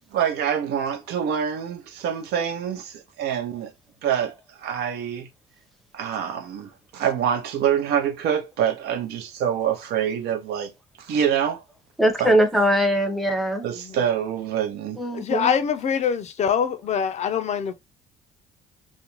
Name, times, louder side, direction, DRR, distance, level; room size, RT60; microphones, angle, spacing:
voice 1, 0.1-3.7 4.0-5.3 5.9-10.7 11.0-11.6 12.2-12.3 13.6-15.0, right 8 dB, 75° right, 0.6 m, -26 dB
voice 2, 12.0-13.6 15.0-15.5, equal, ahead, 0.6 m, -21 dB
voice 3, 15.1-17.7, left 7 dB, 40° left, 0.4 m, -24 dB
2.5 x 2.1 x 2.9 m
cardioid pair, 110°, 17 cm